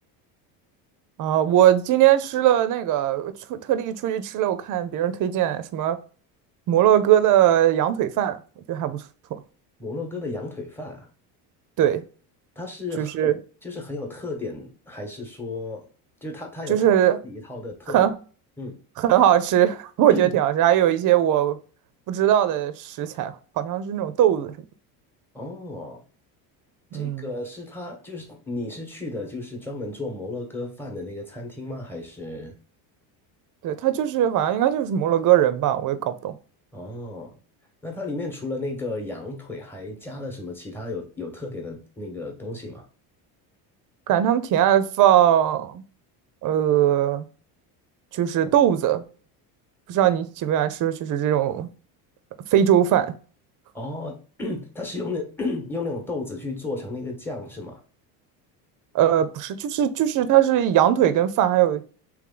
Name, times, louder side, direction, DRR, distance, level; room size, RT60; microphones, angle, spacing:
voice 1, 1.2-6.0 6.7-8.4 8.7-9.0 11.8-12.0 13.0-13.3 16.7-17.2 17.9-18.1 19.0-21.6 22.1-24.5 26.9-27.3 33.6-36.3 44.1-45.8 46.4-47.3 48.1-49.0 49.9-51.7 52.5-53.1 58.9-61.8, right 11 dB, 45° right, 0.6 m, -20 dB
voice 2, 9.8-11.1 12.5-13.3 13.6-15.9 16.2-16.9 17.2-18.1 18.6-18.8 20.1-20.4 25.3-26.0 26.9-32.5 36.7-37.4 37.8-42.9 53.7-57.8, left 2 dB, 5° left, 1.1 m, -33 dB
3.2 x 3.2 x 3.7 m
supercardioid pair, 110°, 44 cm